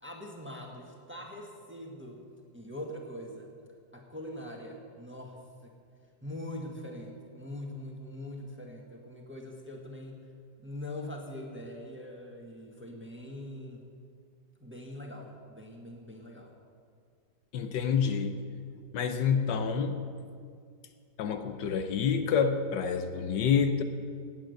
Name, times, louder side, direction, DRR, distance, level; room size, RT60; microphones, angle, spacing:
voice 1, 0.0-2.2 2.5-3.5 3.9-5.7 6.2-10.2 10.6-13.8 14.6-16.6, left 1 dB, 5° right, 1 dB, 1.3 m, -42 dB
voice 2, 17.5-18.4 18.9-20.0 21.2-23.8, left 6 dB, 75° left, 8 dB, 1.4 m, -28 dB
17.0 x 9.0 x 6.6 m, 2.3 s
omnidirectional pair, 2.0 m